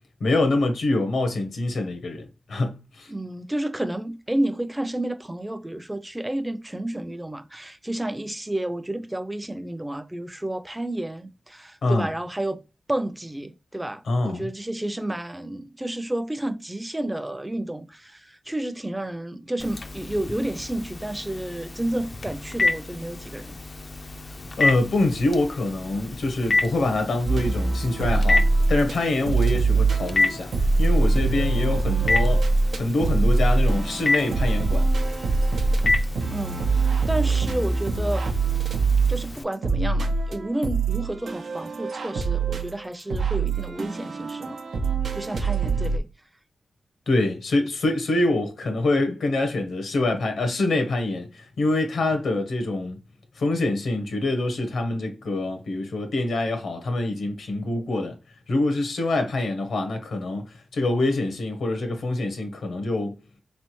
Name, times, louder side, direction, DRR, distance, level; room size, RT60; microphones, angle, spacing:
voice 1, 0.2-3.1 11.8-12.1 14.0-14.5 24.6-30.5 30.8-32.4 32.7-34.9 47.1-53.0 53.4-58.1 58.5-63.1, left 2 dB, 85° left, 0.9 m, -25 dB
voice 2, 3.1-12.6 12.9-23.6 36.3-38.2 39.1-44.6 45.1-46.1, right 1 dB, 15° right, 0.5 m, -31 dB
Telephone, 19.6-39.4, left 3 dB, 50° left, 0.4 m, -30 dB
sound 1, 27.3-29.0 29.3-46.0, right 3 dB, 80° right, 0.6 m, -23 dB
3.8 x 3.2 x 3.0 m
cardioid pair, 60°, 0 cm